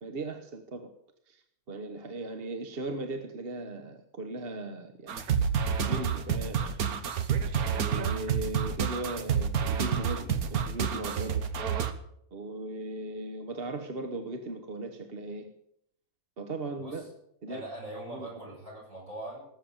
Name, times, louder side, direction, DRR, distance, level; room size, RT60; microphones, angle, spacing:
voice 1, 0.0-0.9 1.3-1.4 1.7-5.2 5.8-6.8 7.7-11.4 12.3-15.5 16.4-17.1 17.4-17.6 18.1-18.3, right 2 dB, 45° right, 7 dB, 1.3 m, -38 dB
sound 1, 5.1-11.9, right 7 dB, 80° right, 1.6 m, -29 dB
voice 2, 17.5-19.5, right 1 dB, 60° right, -4 dB, 8.3 m, -41 dB
18.5 x 7.7 x 8.7 m, 0.74 s
omnidirectional pair, 1.5 m